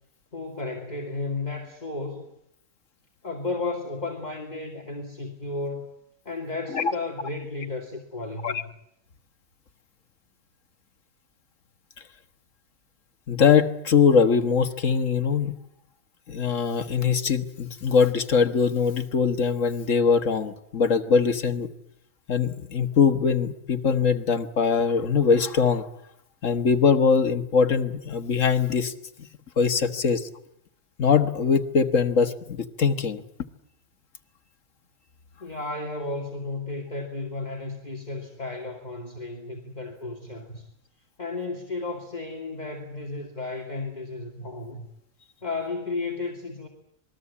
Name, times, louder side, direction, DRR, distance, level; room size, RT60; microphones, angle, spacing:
voice 1, 0.3-2.3 3.2-5.9 6.2-8.7 35.4-40.7 41.2-44.9 45.4-46.7, left 3 dB, 35° left, 0 dB, 2.6 m, -33 dB
voice 2, 13.3-15.5 16.3-21.7 22.3-25.9 26.4-28.9 29.6-30.3 31.0-33.2, left 6 dB, 75° left, 8 dB, 1.8 m, -22 dB
27.0 x 20.5 x 8.5 m, 0.77 s
omnidirectional pair, 1.4 m